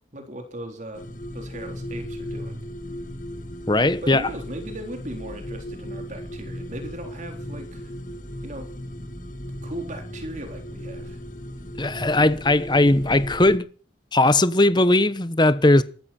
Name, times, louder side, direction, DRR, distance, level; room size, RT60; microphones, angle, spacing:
voice 1, 0.1-1.1 1.3-2.6 4.0-7.9 8.4-8.7 9.6-11.2, right 1 dB, 40° right, 3.9 m, -37 dB
sound 1, 0.9-13.6, equal, 45° left, 1.9 m, -36 dB
voice 2, 3.7-4.3 11.8-13.7 14.1-15.8, left 2 dB, 25° left, 1.0 m, -18 dB
23.5 x 13.5 x 4.4 m
head